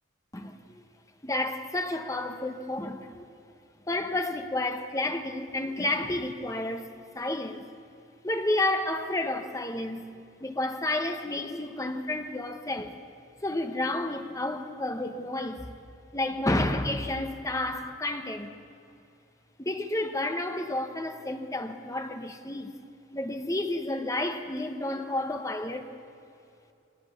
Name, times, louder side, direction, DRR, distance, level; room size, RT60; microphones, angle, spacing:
voice 1, 0.3-0.8 1.2-3.3 3.9-7.6 8.2-10.1 10.4-13.0 13.4-15.7 16.1-18.5 19.6-22.7 23.1-25.9, left 1 dB, 15° left, 1.0 m, -31 dB
23.5 x 19.0 x 7.1 m
head